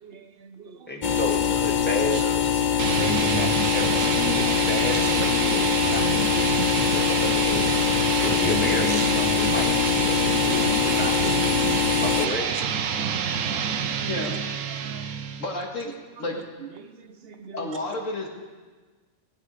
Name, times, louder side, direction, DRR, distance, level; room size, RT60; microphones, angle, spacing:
voice 1, 0.0-1.2 2.1-2.4 2.6-3.4 3.6-4.7 4.9-5.2 5.8-6.2 7.5-8.1 8.9-9.2 9.8-9.9 10.3-12.6 12.9-14.1 14.7-15.0 16.8-17.7, right 6 dB, 55° right, 9 dB, 1.0 m, -42 dB
voice 2, 0.9-2.2 3.0-4.0 4.3-7.7 8.2-11.6 11.9-12.5, left 2 dB, 10° left, 1 dB, 1.6 m, -32 dB
sound 1, 1.0-12.3, left 8 dB, 45° left, 0.7 m, -23 dB
sound 2, 2.8-15.6, right 6 dB, 85° right, 1.2 m, -27 dB
voice 3, 14.0-14.4 15.4-16.4 17.5-18.3, left 2 dB, 80° left, 0 dB, 2.4 m, -31 dB
18.0 x 8.4 x 6.5 m, 1.4 s
omnidirectional pair, 1.3 m